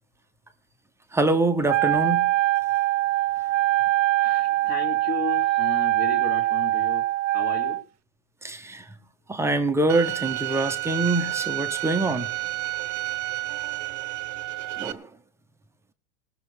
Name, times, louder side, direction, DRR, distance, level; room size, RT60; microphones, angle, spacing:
voice 1, 1.1-2.3 8.4-8.8 9.3-12.3 14.8-15.1, right 2 dB, 5° right, 1.0 m, -24 dB
Wind instrument woodwind instrument, 1.7-7.8, right 16 dB, 70° right, 0.9 m, -23 dB
voice 2, 4.2-7.0 7.3-7.8, left 5 dB, 30° left, 2.1 m, -34 dB
Bowed string instrument, 9.9-14.9, right 18 dB, 40° right, 1.1 m, -30 dB
18.0 x 6.8 x 6.4 m
supercardioid pair, 145°, 37 cm